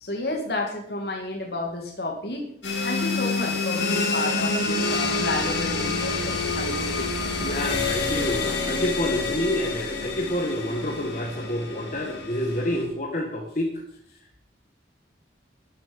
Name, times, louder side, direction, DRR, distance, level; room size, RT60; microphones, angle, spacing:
voice 1, 0.0-2.4 2.8-7.1, left 2 dB, 60° left, 1 dB, 2.3 m, -31 dB
sound 1, 2.6-12.8, left 3 dB, 90° left, 2.9 m, -27 dB
voice 2, 7.4-13.8, left 1 dB, 45° left, 1 dB, 1.6 m, -28 dB
12.5 x 10.5 x 5.3 m, 0.68 s
head